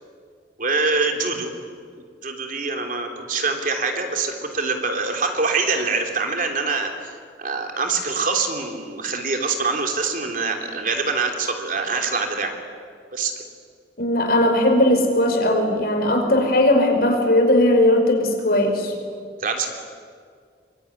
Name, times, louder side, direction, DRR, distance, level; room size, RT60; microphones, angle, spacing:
voice 1, 0.6-1.5 2.2-12.5 13.1-13.3 19.4-19.7, right 4 dB, 50° right, 4 dB, 3.3 m, -24 dB
voice 2, 14.0-18.9, left 1 dB, 60° left, 3 dB, 5.1 m, -18 dB
24.5 x 24.0 x 9.9 m, 2.1 s
head